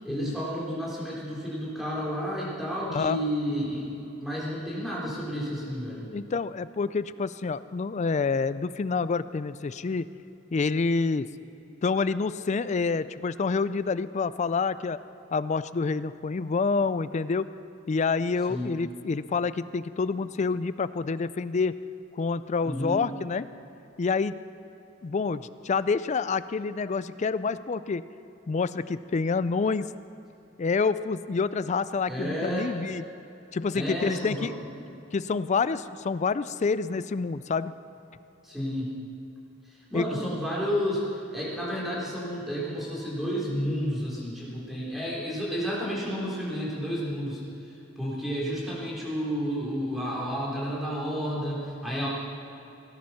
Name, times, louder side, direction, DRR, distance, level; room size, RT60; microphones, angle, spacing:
voice 1, 0.0-6.0 18.5-18.7 22.6-23.0 32.1-32.7 33.7-34.5 34.8-34.9 38.4-39.0 39.9-41.1 41.3-47.4 48.0-52.1, equal, ahead, -6 dB, 3.6 m, -31 dB
voice 2, 2.9-3.2 6.1-10.1 10.5-11.3 11.8-15.0 15.3-17.5 17.9-21.8 22.1-23.5 24.0-24.4 25.0-28.0 28.5-29.9 30.6-33.0 33.5-34.5 35.1-37.7 39.9-40.1, left 4 dB, 35° left, 15 dB, 0.4 m, -27 dB
18.0 x 10.5 x 5.7 m, 2.9 s
head